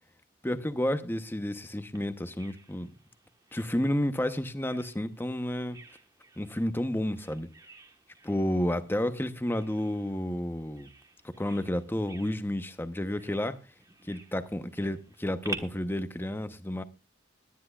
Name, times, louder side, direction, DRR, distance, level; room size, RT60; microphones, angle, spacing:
voice 1, 0.4-2.9 3.5-5.8 6.4-7.5 8.2-10.9 11.2-13.6 14.1-16.8, left 1 dB, 10° left, 0.9 m, -31 dB
Bird vocalization bird call bird song, 2.0-15.6, right 3 dB, 20° right, 1.3 m, -50 dB
21.0 x 10.5 x 2.4 m
head